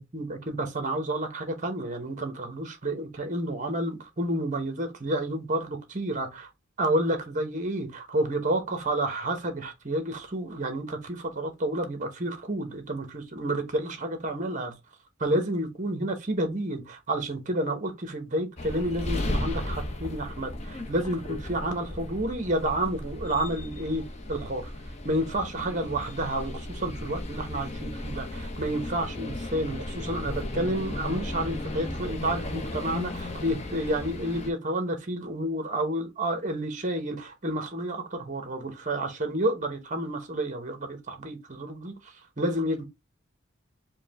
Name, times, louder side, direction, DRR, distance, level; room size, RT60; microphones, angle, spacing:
voice 1, 0.1-6.5 6.8-14.7 15.2-24.7 25.0-42.8, right 1 dB, 40° right, 1.0 m, -30 dB
sound 1, 18.6-34.5, left 1 dB, 35° left, 0.7 m, -35 dB
4.6 x 2.2 x 3.4 m
head